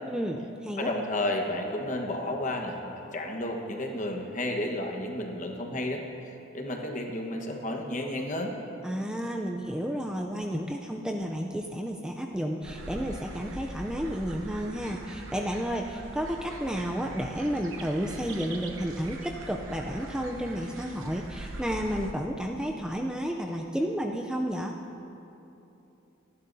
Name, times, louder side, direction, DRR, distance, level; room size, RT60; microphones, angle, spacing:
voice 1, 0.1-0.9 8.8-24.8, equal, 5° right, 1 dB, 0.4 m, -32 dB
voice 2, 0.8-8.5, left 1 dB, 35° left, 1 dB, 1.3 m, -32 dB
sound 1, 12.6-22.1, right 2 dB, 75° right, 1.0 m, -42 dB
28.0 x 11.0 x 2.7 m, 3.0 s
head